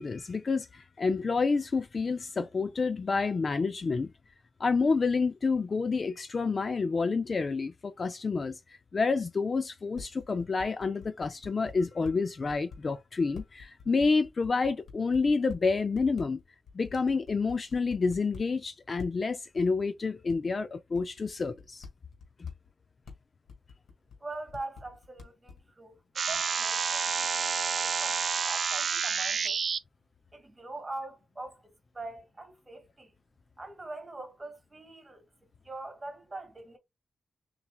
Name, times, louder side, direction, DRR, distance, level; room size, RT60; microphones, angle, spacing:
voice 1, 0.0-4.1 4.6-8.6 8.9-16.4 16.7-21.9, left 4 dB, 35° left, 0.3 m, -29 dB
sound 1, 9.5-9.6 9.9-12.1 12.5-12.8 13.3-15.6 15.9-16.4 16.7-18.4 19.0-19.2 19.6-19.7 20.3-20.4 20.9-22.7 23.0-23.2 23.5-24.2 24.5-25.6, left 5 dB, 70° left, 1.9 m, -46 dB
voice 2, 24.2-29.6 30.3-33.1 33.6-35.2 35.6-36.8, right 2 dB, 20° right, 1.7 m, -43 dB
sound 2, 26.2-29.8, right 6 dB, 50° right, 0.4 m, -29 dB
6.8 x 3.2 x 2.2 m
wide cardioid pair, 160°, 0 cm